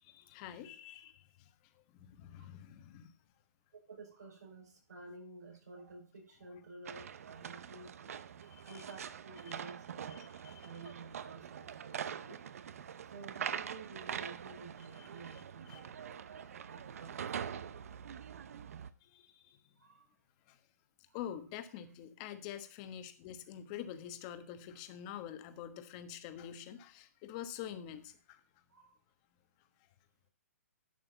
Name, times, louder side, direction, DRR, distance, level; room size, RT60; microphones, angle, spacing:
voice 1, 0.1-1.3 1.9-3.1 8.5-8.8 9.4-9.6 10.1-10.7 15.0-15.8 19.0-19.4 20.5-20.6 21.1-28.4, left 10 dB, 25° left, 1.2 m, -47 dB
voice 2, 3.9-8.1 8.7-12.4 13.1-17.6 19.8-20.1 21.1-21.2 28.7-29.0, right 3 dB, 85° right, 5.2 m, -52 dB
sound 1, 6.8-18.9, right 8 dB, 60° right, 0.8 m, -44 dB
11.5 x 7.9 x 3.9 m
hypercardioid pair, 160°, 9 cm